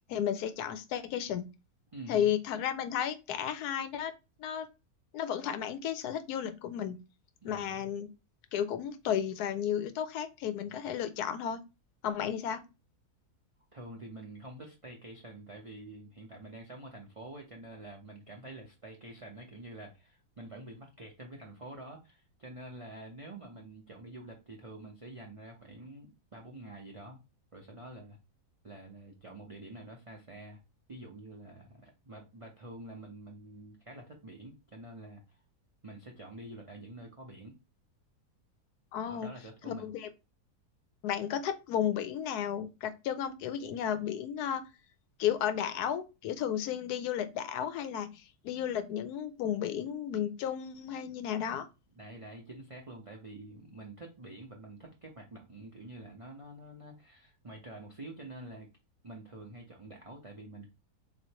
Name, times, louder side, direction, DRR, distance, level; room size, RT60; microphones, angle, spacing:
voice 1, 0.1-1.5 2.1-4.1 4.4-4.7 5.1-7.0 7.4-8.1 8.5-11.6 12.0-12.6 38.9-39.3 39.6-40.1 41.0-44.6 45.2-51.7, left 9 dB, 85° left, 1.1 m, -33 dB
voice 2, 1.9-2.3 7.4-7.9 13.7-27.2 27.5-28.2 28.6-30.6 30.9-35.4 35.8-37.6 39.1-39.9 51.9-58.7 59.0-60.7, right 1 dB, 60° right, 0.3 m, -47 dB
3.6 x 3.1 x 2.9 m
omnidirectional pair, 1.6 m